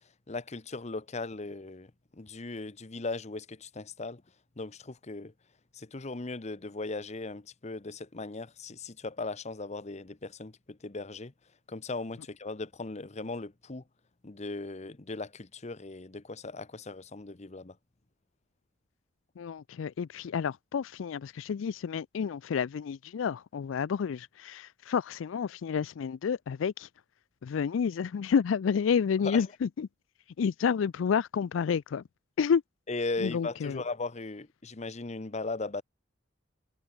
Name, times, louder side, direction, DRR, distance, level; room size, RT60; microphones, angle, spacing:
voice 1, 0.3-4.2 4.6-5.3 5.7-11.3 11.7-13.8 14.2-17.8 29.2-29.4 32.9-35.8, left 3 dB, 35° left, 0.9 m, -38 dB
voice 2, 19.4-26.9 27.4-29.9 30.4-32.0 32.4-32.6 33.2-33.8, left 6 dB, 80° left, 0.4 m, -30 dB
head